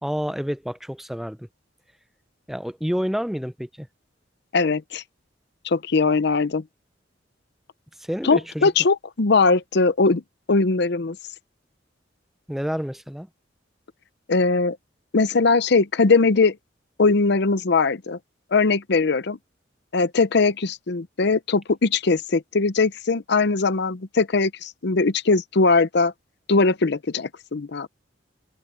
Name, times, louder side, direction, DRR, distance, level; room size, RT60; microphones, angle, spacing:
voice 1, 0.0-1.5 2.5-3.9 8.0-8.7 12.5-13.3, equal, ahead, 0.6 m, -29 dB
voice 2, 4.5-5.0 5.6-6.6 8.2-10.2 10.5-11.2 14.3-14.8 15.1-16.6 17.0-18.2 18.5-19.4 19.9-26.1 26.5-27.9, left 4 dB, 60° left, 0.7 m, -20 dB
open air
head